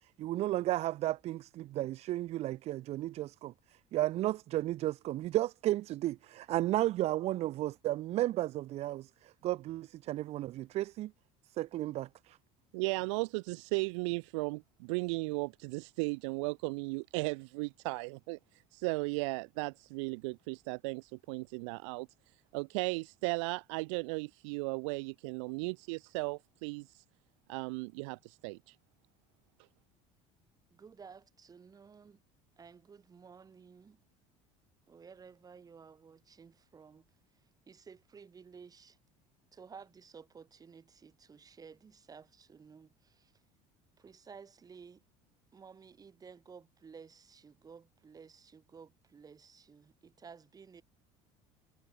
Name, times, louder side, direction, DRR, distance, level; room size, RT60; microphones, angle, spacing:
voice 1, 0.2-3.5 3.9-11.1 11.6-12.4, right 15 dB, 45° right, 0.4 m, -33 dB
voice 2, 12.7-18.4 18.7-22.1 22.5-26.9 27.5-28.6, right 29 dB, 90° right, 0.6 m, -36 dB
voice 3, 30.7-32.2 32.6-34.0 34.9-37.1 37.7-39.0 39.5-43.3 44.0-45.0 45.5-50.8, right 6 dB, 25° right, 3.4 m, -54 dB
cardioid pair, 125°, 15 cm